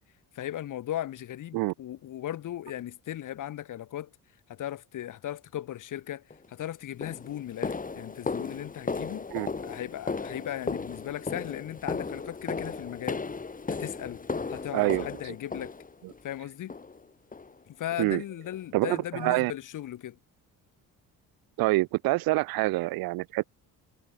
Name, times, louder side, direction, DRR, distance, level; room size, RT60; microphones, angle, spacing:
voice 1, 0.3-4.1 4.5-9.3 9.6-13.2 13.7-14.2 14.5-15.7 16.2-16.8 17.7-20.2, left 12 dB, 60° left, 2.2 m, -37 dB
sound 1, 6.3-6.5 7.0-16.2 16.7-17.0 17.3-17.5 17.9-18.1 18.5-18.6 19.1-19.2, left 4 dB, 25° left, 3.3 m, -35 dB
voice 2, 14.7-15.3 18.0-18.2 18.7-19.5 21.6-23.4, right 20 dB, 85° right, 0.8 m, -26 dB
cardioid pair, 100°, 35 cm